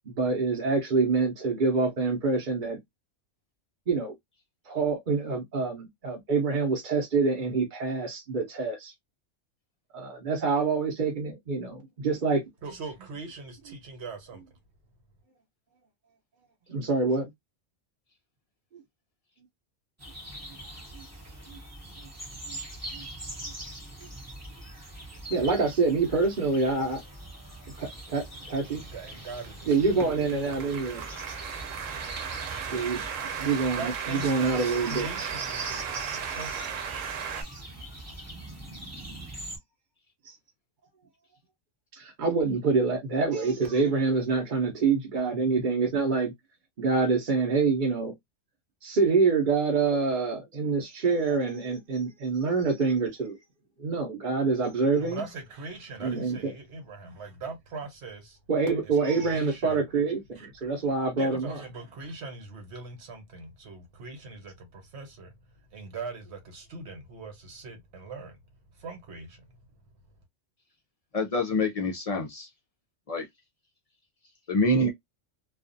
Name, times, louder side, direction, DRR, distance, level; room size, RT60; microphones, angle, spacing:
voice 1, 0.1-2.8 3.9-4.1 4.7-8.9 9.9-12.4 16.7-17.3 20.9-21.0 21.5-21.6 22.5-22.6 22.9-23.0 23.4-23.5 25.3-27.0 27.8-28.8 29.7-31.0 32.7-36.7 37.3-37.6 40.2-40.3 41.9-46.3 46.8-48.1 48.8-53.4 53.8-55.2 56.0-56.5 58.5-61.6, right 4 dB, 45° right, 0.8 m, -26 dB
voice 2, 12.6-14.4 28.7-30.1 33.8-36.6 55.0-58.4 58.8-59.9 60.3-60.7 61.1-65.4 65.7-68.4 68.8-69.4, right 3 dB, 60° right, 1.2 m, -41 dB
sound 1, 20.0-39.6, right 1 dB, 15° right, 0.7 m, -43 dB
sound 2, 28.2-37.4, right 7 dB, 90° right, 1.0 m, -36 dB
voice 3, 71.1-72.5 73.1-73.2 74.5-74.9, left 1 dB, 55° left, 0.4 m, -26 dB
2.4 x 2.4 x 2.5 m
omnidirectional pair, 1.3 m